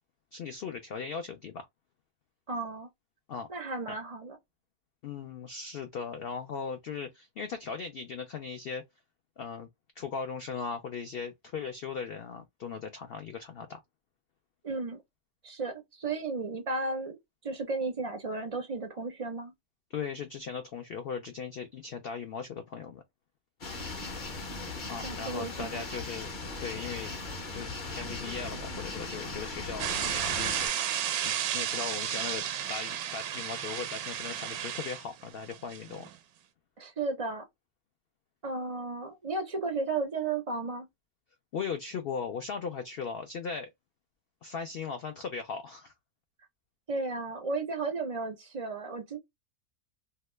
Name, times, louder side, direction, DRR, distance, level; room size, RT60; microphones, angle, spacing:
voice 1, 0.3-1.7 3.3-3.5 3.9-4.0 5.0-8.9 9.4-9.7 10.0-13.8 19.9-23.0 24.9-26.3 26.6-27.1 27.5-30.5 31.2-36.1 41.5-43.7 44.4-45.9, left 5 dB, 75° left, 0.5 m, -38 dB
voice 2, 2.5-2.9 3.5-4.4 14.6-15.0 15.4-17.2 17.4-19.5 25.0-25.8 36.8-37.5 38.4-40.9 46.9-49.2, right 3 dB, 55° right, 0.4 m, -34 dB
sound 1, 23.6-30.7, left 3 dB, 40° left, 0.9 m, -38 dB
sound 2, 29.8-36.2, right 10 dB, 90° right, 1.1 m, -33 dB
2.8 x 2.2 x 3.1 m
omnidirectional pair, 1.6 m